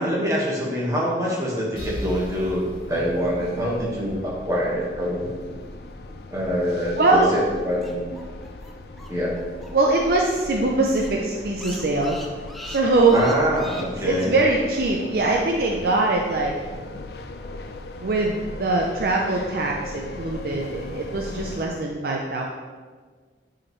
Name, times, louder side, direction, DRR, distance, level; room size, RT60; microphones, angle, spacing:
voice 1, 0.0-5.3 6.3-8.1 9.1-9.4 13.1-14.3, equal, 20° right, -5 dB, 1.5 m, -25 dB
sound 1, 1.7-21.7, left 2 dB, 60° left, 0.5 m, -39 dB
sound 2, 1.8-5.4, equal, 30° left, 1.6 m, -39 dB
voice 2, 7.0-7.3 9.7-12.2 12.7-13.2 13.8-16.5 18.0-22.4, right 2 dB, 60° right, 0 dB, 0.6 m, -22 dB
sound 3, 7.5-10.0 10.3-10.4 10.6-10.7 11.0-14.3, equal, ahead, 0.5 m, -41 dB
8.6 x 5.0 x 3.1 m, 1.5 s
head